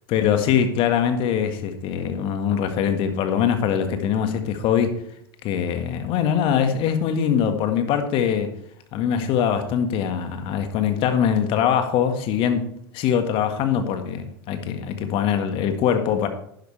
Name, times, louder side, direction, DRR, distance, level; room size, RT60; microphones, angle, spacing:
voice 1, 0.1-5.0 5.4-8.5 8.9-16.3, left 8 dB, 50° left, 8 dB, 1.8 m, -22 dB
11.0 x 10.5 x 3.4 m, 0.71 s
hypercardioid pair, 85°, 12 cm